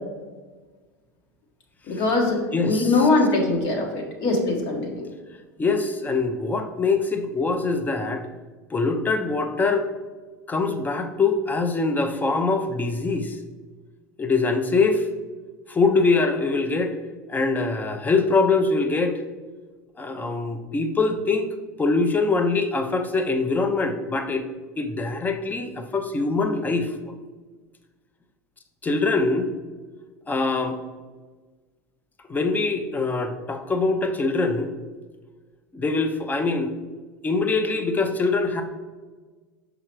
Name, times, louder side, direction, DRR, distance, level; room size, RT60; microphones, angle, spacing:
voice 1, 1.9-5.0, left 3 dB, 55° left, 1 dB, 1.5 m, -22 dB
voice 2, 2.5-3.1 5.6-8.3 8.7-9.9 10.5-13.4 14.2-15.1 15.7-17.0 17.3-19.2 20.0-21.5 21.8-24.4 24.8-26.9 28.8-29.5 30.3-30.8 32.3-34.7 35.7-36.7 37.2-38.6, left 3 dB, 20° left, 6 dB, 0.7 m, -23 dB
6.2 x 4.9 x 3.1 m, 1.3 s
hypercardioid pair, 85°, 9 cm